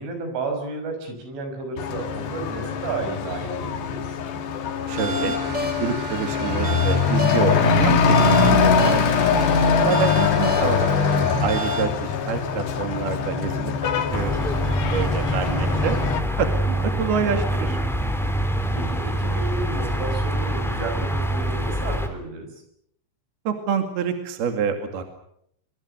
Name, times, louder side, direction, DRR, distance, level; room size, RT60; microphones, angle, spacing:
voice 1, 0.0-4.1 16.7-17.6 18.7-22.5, right 3 dB, 80° right, 6 dB, 8.3 m, -32 dB
Truck / Accelerating revving vroom, 1.8-16.2, left 5 dB, 65° left, 4.0 m, -22 dB
sound 1, 4.9-11.9, left 1 dB, 15° right, 4.2 m, -30 dB
voice 2, 4.9-9.4 9.8-10.9 11.4-14.3 14.9-16.0 16.4-17.8 23.5-25.0, right 6 dB, 60° right, 6 dB, 4.0 m, -27 dB
sound 2, 14.1-22.1, right 1 dB, ahead, 2.1 m, -25 dB
25.0 x 24.0 x 6.7 m, 0.70 s
omnidirectional pair, 5.4 m